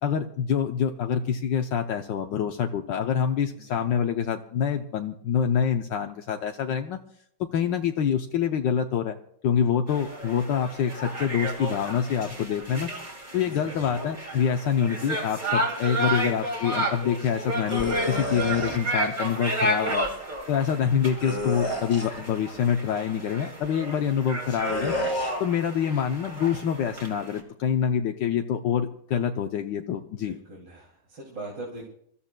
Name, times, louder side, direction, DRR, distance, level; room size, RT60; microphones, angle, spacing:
voice 1, 0.0-7.0 7.5-9.2 9.4-12.9 13.3-20.1 20.5-24.9 25.4-30.4, left 8 dB, 70° left, 5 dB, 1.3 m, -26 dB
sound 1, 9.9-27.4, right 1 dB, 20° right, 2.7 m, -32 dB
voice 2, 13.3-14.2 30.1-31.9, right 2 dB, 65° right, -4 dB, 3.5 m, -42 dB
sound 2, 17.7-18.8 21.2-22.2 24.6-25.3, left 1 dB, 15° left, 1.8 m, -31 dB
27.5 x 14.0 x 2.2 m, 0.68 s
omnidirectional pair, 2.1 m